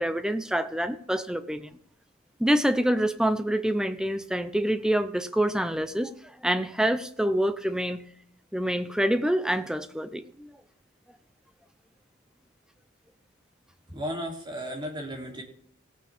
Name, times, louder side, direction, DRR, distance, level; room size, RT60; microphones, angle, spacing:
voice 1, 0.0-1.7 2.4-6.1 6.4-8.0 8.5-10.5, right 1 dB, 5° right, 10 dB, 0.7 m, -26 dB
voice 2, 13.9-15.4, equal, 25° right, 0 dB, 3.1 m, -34 dB
18.0 x 9.1 x 3.6 m, 0.65 s
head